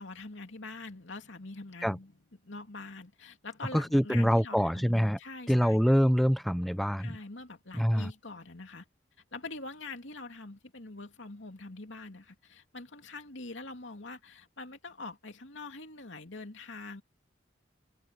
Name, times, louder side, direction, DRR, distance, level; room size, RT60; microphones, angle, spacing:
voice 1, 0.0-2.1 2.4-5.9 7.0-8.8 9.3-17.0, left 3 dB, 85° left, 2.8 m, -44 dB
voice 2, 3.7-5.2 5.5-7.2 7.7-8.1, equal, ahead, 0.3 m, -25 dB
head